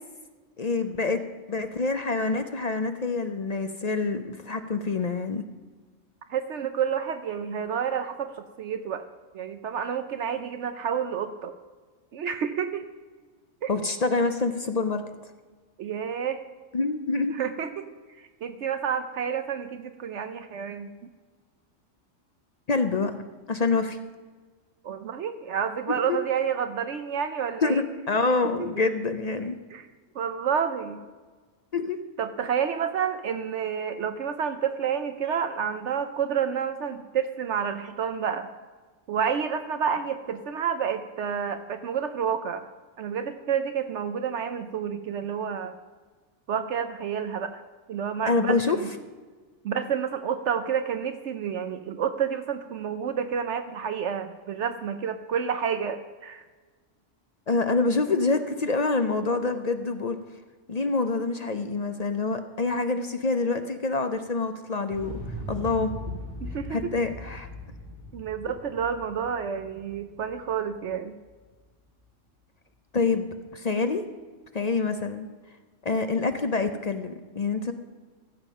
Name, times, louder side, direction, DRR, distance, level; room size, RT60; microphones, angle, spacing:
voice 1, 0.6-1.2 1.5-5.4 13.7-15.0 16.7-17.3 22.7-23.2 23.5-24.0 25.9-26.2 27.6-29.6 31.7-32.0 48.3-48.8 57.5-60.2 60.7-65.2 65.5-66.2 66.7-67.5 72.9-74.0 74.5-75.3 75.8-77.7, left 3 dB, 45° left, 8 dB, 0.5 m, -26 dB
voice 2, 6.3-8.3 8.6-9.0 9.3-11.5 12.1-12.9 13.6-13.7 15.8-16.4 17.3-17.9 18.2-20.9 24.8-27.8 28.6-28.7 29.7-29.8 30.1-31.0 32.2-38.5 39.1-42.6 43.0-45.7 46.5-47.6 47.9-48.9 49.6-56.4 66.4-66.8 68.1-71.1, right 7 dB, 65° right, 9 dB, 0.9 m, -29 dB
Explosion, 64.9-70.9 71.2-71.3, equal, 20° right, 2.8 m, -39 dB
15.0 x 7.4 x 5.3 m, 1.4 s
omnidirectional pair, 1.4 m